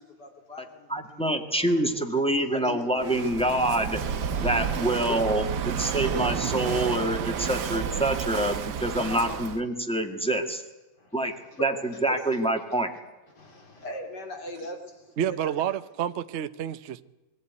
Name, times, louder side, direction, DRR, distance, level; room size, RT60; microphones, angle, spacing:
voice 1, 0.0-1.8 2.4-3.4 4.3-4.4 5.1-6.0 6.7-7.0 7.6-7.8 9.1-9.4 11.0-12.2 12.7-12.8 13.3-15.5, left 2 dB, 50° left, 3.9 m, -41 dB
voice 2, 0.9-4.0 4.4-10.6 11.1-12.9, right 1 dB, 5° left, 1.7 m, -26 dB
Walk footsteps / Wind / Waves surf, 3.0-9.6, right 7 dB, 55° right, 1.5 m, -30 dB
voice 3, 15.2-17.0, right 10 dB, 75° right, 0.6 m, -29 dB
22.5 x 15.0 x 9.4 m
omnidirectional pair, 2.3 m